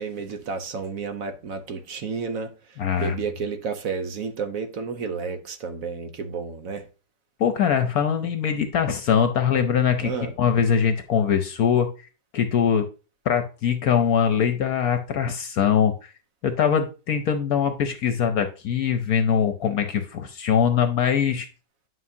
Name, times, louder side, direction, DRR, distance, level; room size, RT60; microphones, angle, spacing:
voice 1, 0.0-6.9 10.0-10.3, right 5 dB, 60° right, 1.1 m, -31 dB
voice 2, 2.8-3.2 7.4-10.1 10.4-11.9 12.3-12.8 13.3-15.9 16.4-21.5, left 7 dB, 65° left, 1.2 m, -22 dB
9.5 x 5.8 x 2.7 m
omnidirectional pair, 1.8 m